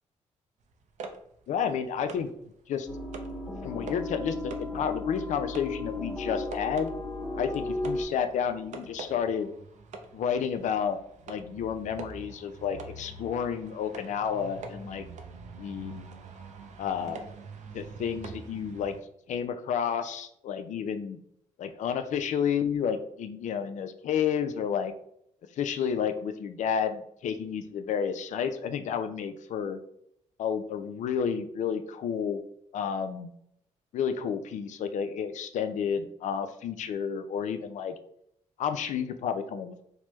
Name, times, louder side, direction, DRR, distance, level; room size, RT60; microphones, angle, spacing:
sound 1, 0.7-2.4 2.8-3.4 3.8-4.2 4.5-19.0, right 4 dB, 65° right, 0.4 m, -45 dB
voice 1, 1.5-2.3 2.7-2.9 3.6-6.9 7.4-9.5 10.1-11.0 11.3-15.1 15.6-16.0 16.8-17.3 17.7-19.0 19.3-21.2 21.6-24.9 25.6-29.8 30.4-32.4 32.7-33.3 33.9-38.0 38.6-39.8, left 7 dB, 65° left, 9 dB, 0.4 m, -31 dB
sound 2, 2.9-8.0, left 2 dB, 20° left, 0.9 m, -35 dB
3.2 x 2.1 x 2.9 m, 0.71 s
cardioid pair, 65°, 13 cm